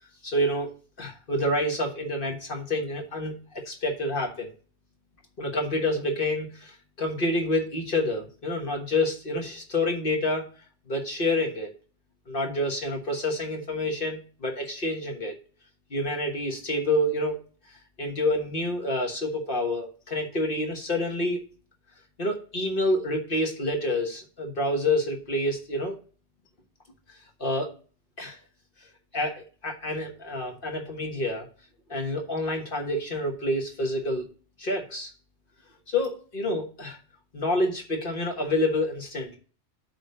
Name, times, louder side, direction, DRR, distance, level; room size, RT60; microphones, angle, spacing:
voice 1, 0.2-0.7 1.0-3.3 3.7-4.5 5.4-10.4 10.9-11.7 12.3-15.4 15.9-17.4 18.0-21.4 22.2-26.0 27.4-27.7 28.2-28.4 29.1-31.5 31.9-34.2 34.6-35.1 35.9-37.0 37.3-39.4, left 1 dB, 50° left, 1 dB, 1.5 m, -28 dB
8.6 x 3.4 x 6.6 m, 0.39 s
omnidirectional pair, 1.2 m